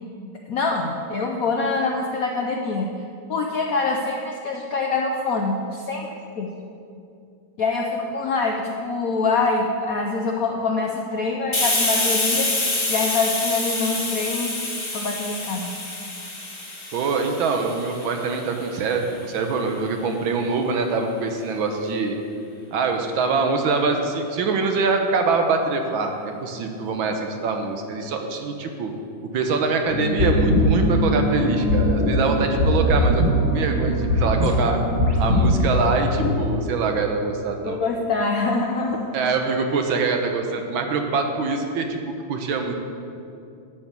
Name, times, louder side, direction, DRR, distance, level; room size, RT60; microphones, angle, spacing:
voice 1, 0.5-2.9 3.3-6.5 7.6-12.5 12.9-14.5 14.9-15.7 37.6-39.3, left 3 dB, 90° left, 1 dB, 0.7 m, -25 dB
Hiss, 11.5-18.9, left 2 dB, 25° left, 0.7 m, -27 dB
voice 2, 16.9-22.2 22.7-28.9 29.3-34.8 35.2-37.8 39.1-42.0 42.3-42.7, right 4 dB, 70° right, 4 dB, 1.6 m, -24 dB
sound 1, 29.9-36.3, left 1 dB, 35° right, 1.7 m, -21 dB
11.5 x 4.4 x 8.0 m, 2.6 s
omnidirectional pair, 2.4 m